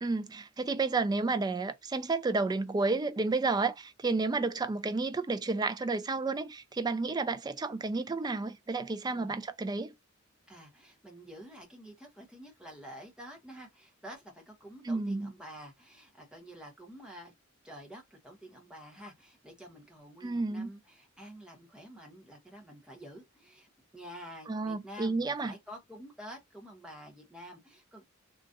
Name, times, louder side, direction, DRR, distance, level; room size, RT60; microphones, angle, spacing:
voice 1, 0.0-9.9 14.8-15.3 20.2-20.7 24.5-25.5, right 3 dB, 20° right, 0.3 m, -31 dB
voice 2, 10.5-17.3 17.6-28.0, equal, 5° right, 1.1 m, -49 dB
3.9 x 2.4 x 2.4 m
head